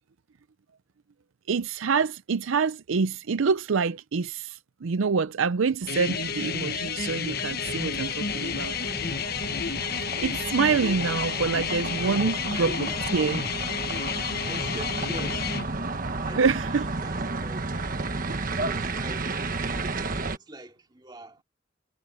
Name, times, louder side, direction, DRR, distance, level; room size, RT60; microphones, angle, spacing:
voice 1, 1.5-8.7 10.2-12.7 13.1-13.4 16.4-16.8, right 5 dB, 75° right, 0.5 m, -26 dB
sound 1, 5.8-20.4, right 3 dB, 40° right, 1.3 m, -33 dB
sound 2, 5.9-15.6, left 6 dB, 50° left, 1.1 m, -31 dB
voice 2, 12.0-13.0 14.4-17.8 18.5-21.4, right 1 dB, 20° right, 2.6 m, -44 dB
head